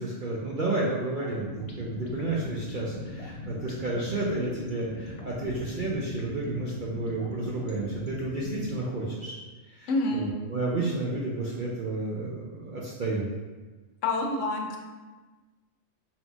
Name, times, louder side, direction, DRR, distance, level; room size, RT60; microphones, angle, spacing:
voice 1, 0.0-9.3 9.7-13.3, right 2 dB, 60° right, -5 dB, 0.5 m, -31 dB
sound 1, 1.2-8.8, left 3 dB, 90° left, 0.3 m, -40 dB
voice 2, 9.9-10.3 14.0-14.8, left 2 dB, 70° left, 2 dB, 0.9 m, -27 dB
3.9 x 3.9 x 2.3 m, 1.3 s
omnidirectional pair, 1.4 m